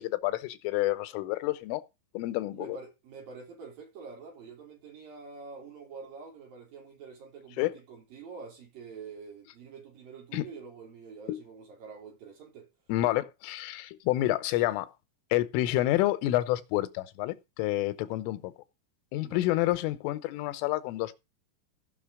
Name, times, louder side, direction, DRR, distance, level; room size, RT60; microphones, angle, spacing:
voice 1, 0.0-1.8 2.1-2.8 7.6-7.7 10.3-10.5 11.3-11.4 12.9-14.9 15.3-18.5 19.1-21.1, left 16 dB, 85° left, 3.4 m, -29 dB
voice 2, 2.5-12.7 19.2-19.5, right 5 dB, 50° right, 4.5 m, -46 dB
15.5 x 5.9 x 4.8 m
omnidirectional pair, 5.7 m